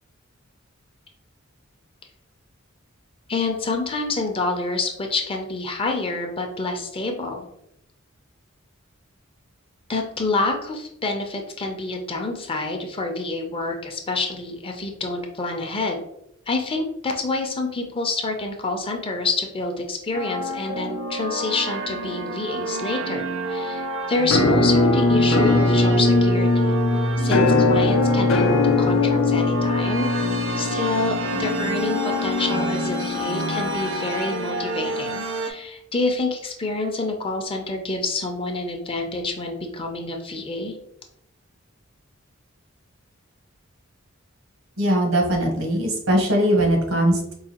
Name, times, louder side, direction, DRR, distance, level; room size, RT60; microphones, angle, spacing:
voice 1, 3.3-7.5 9.9-15.9 16.5-26.7 27.2-30.1 30.6-40.7, left 3 dB, 25° left, 3 dB, 0.5 m, -27 dB
sound 1, 20.1-35.5, right 2 dB, 60° right, 0.6 m, -29 dB
Musical instrument, 24.3-34.1, left 2 dB, 75° left, 0.5 m, -21 dB
voice 2, 44.8-47.3, right 1 dB, 85° right, 1 dB, 1.1 m, -20 dB
4.7 x 2.3 x 2.9 m, 0.76 s
head